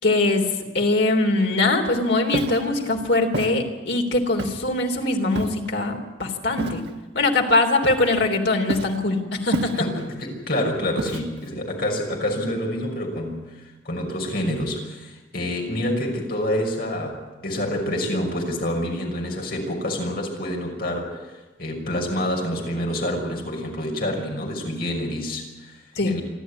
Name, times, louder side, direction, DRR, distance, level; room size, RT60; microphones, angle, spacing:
voice 1, 0.0-6.8 7.1-9.8 25.9-26.1, left 2 dB, 75° left, 3 dB, 3.4 m, -22 dB
Walk footsteps, 2.3-2.7 3.3-3.6 4.4-4.7 5.3-5.7 6.6-6.9 7.8-8.3 8.7-9.0 9.5-10.1 11.0-11.5, right 1 dB, 70° right, 1.7 m, -29 dB
voice 2, 9.8-21.2 21.6-26.2, left 1 dB, 55° left, 1 dB, 6.0 m, -27 dB
27.5 x 12.0 x 9.8 m, 1.1 s
head